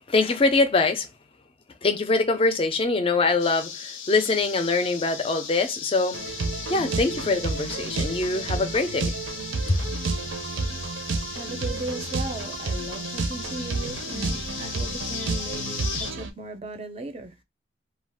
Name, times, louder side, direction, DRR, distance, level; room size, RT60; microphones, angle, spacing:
voice 1, 0.1-1.1 1.8-6.2 6.7-9.1 9.7-9.8, left 3 dB, 30° left, 0.4 m, -23 dB
sound 1, 3.4-16.1, left 7 dB, 85° left, 0.6 m, -37 dB
sound 2, 6.1-16.3, right 3 dB, 75° right, 0.5 m, -31 dB
voice 2, 11.3-17.3, right 2 dB, 30° right, 0.4 m, -37 dB
2.3 x 2.2 x 3.4 m
head